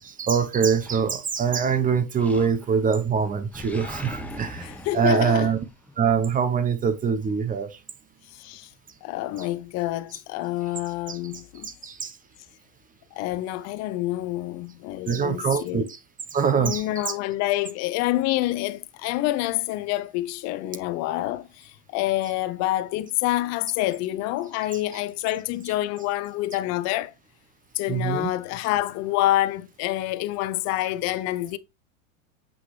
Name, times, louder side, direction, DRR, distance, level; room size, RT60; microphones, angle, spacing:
voice 1, 0.0-4.7 4.9-5.6 6.0-7.8 11.1-11.2 11.6-12.2 15.1-15.8 16.3-16.8 27.9-28.3, right 6 dB, 20° right, 0.9 m, -23 dB
Animal, 0.8-1.6 2.2-2.9 3.2-6.2, left 1 dB, 5° left, 1.5 m, -40 dB
voice 2, 4.6-5.5 8.3-8.7 9.0-11.7 13.1-15.9 16.6-27.1 27.7-31.6, left 15 dB, 40° left, 0.7 m, -27 dB
7.9 x 5.8 x 3.2 m
hypercardioid pair, 110°, 42 cm